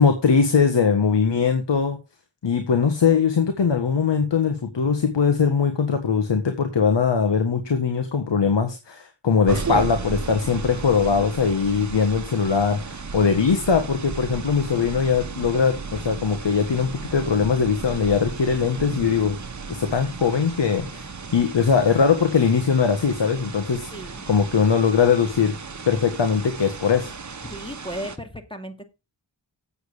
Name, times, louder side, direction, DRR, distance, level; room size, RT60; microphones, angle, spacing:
voice 1, 0.0-2.0 2.4-19.4 19.7-23.9 24.3-25.5 25.9-27.1, left 6 dB, 70° left, 6 dB, 1.7 m, -21 dB
sound 1, 9.5-28.2, right 4 dB, 40° right, 1.3 m, -34 dB
voice 2, 23.9-24.2 27.4-28.8, equal, 10° left, 7 dB, 2.5 m, -35 dB
8.3 x 8.1 x 5.1 m, 0.27 s
cardioid pair, 45°, 44 cm